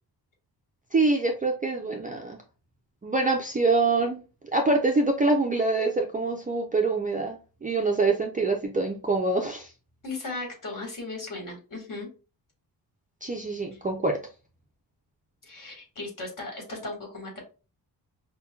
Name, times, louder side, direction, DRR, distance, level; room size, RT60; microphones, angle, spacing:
voice 1, 0.9-2.4 3.0-4.2 4.5-9.7 13.2-14.1, right 3 dB, 20° right, 2 dB, 0.3 m, -25 dB
voice 2, 10.0-12.1 13.7-13.8 15.4-17.4, left 2 dB, 50° left, 1 dB, 1.7 m, -37 dB
5.6 x 2.2 x 2.2 m, 0.33 s
wide cardioid pair, 170°, 40 cm